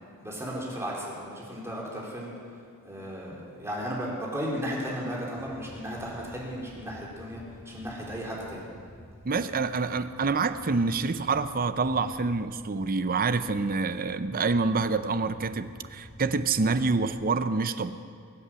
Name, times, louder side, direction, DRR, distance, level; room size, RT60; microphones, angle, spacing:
voice 1, 0.2-2.3 2.8-8.7, equal, 10° right, -4 dB, 3.6 m, -35 dB
sound 1, 5.3-17.2, equal, 25° left, 5.1 m, -50 dB
voice 2, 9.2-17.9, right 4 dB, 40° right, 12 dB, 0.6 m, -27 dB
22.0 x 8.5 x 7.6 m, 2.3 s
head